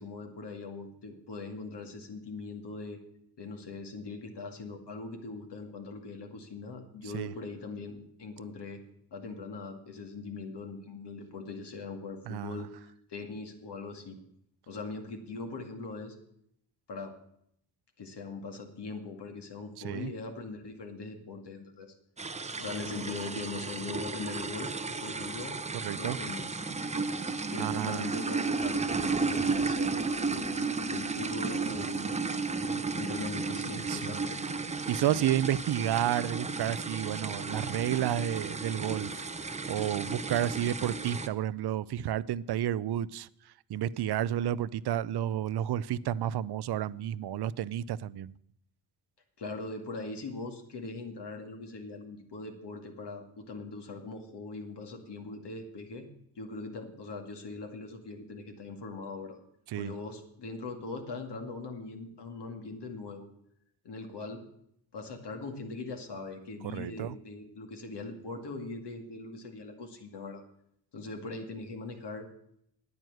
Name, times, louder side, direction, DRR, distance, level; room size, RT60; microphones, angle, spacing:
voice 1, 0.0-3.0 3.4-8.8 9.1-14.2 14.7-16.2 16.9-17.1 18.0-21.9 22.6-24.7 25.0-25.6 26.0-26.5 27.5-32.2 32.5-34.4 49.4-56.1 56.4-59.4 59.8-63.3 63.8-64.4 64.9-70.4 70.9-72.3, left 3 dB, 60° left, 4 dB, 2.3 m, -41 dB
voice 2, 12.3-12.7 19.8-20.1 25.8-26.2 27.6-28.2 33.9-34.2 34.9-43.3 43.7-48.3 59.7-59.9 66.6-67.1, right 11 dB, 60° right, 19 dB, 0.6 m, -31 dB
sound 1, 22.2-41.3, right 4 dB, 15° right, 0.7 m, -33 dB
9.6 x 9.4 x 7.8 m, 0.72 s
cardioid pair, 75°, 46 cm